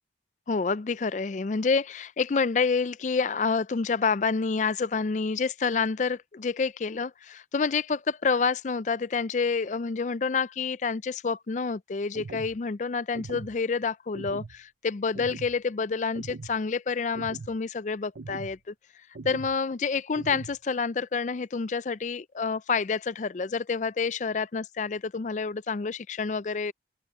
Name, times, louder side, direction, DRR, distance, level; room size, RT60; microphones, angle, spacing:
voice 1, 0.5-18.7 19.2-26.7, left 5 dB, 40° left, 0.4 m, -28 dB
sound 1, 12.1-12.6 13.1-13.6 14.1-14.6 15.1-15.5 16.1-16.6 17.1-17.5 18.2-18.6 19.1-19.6 20.1-20.6, right 3 dB, 70° right, 0.6 m, -41 dB
open air
head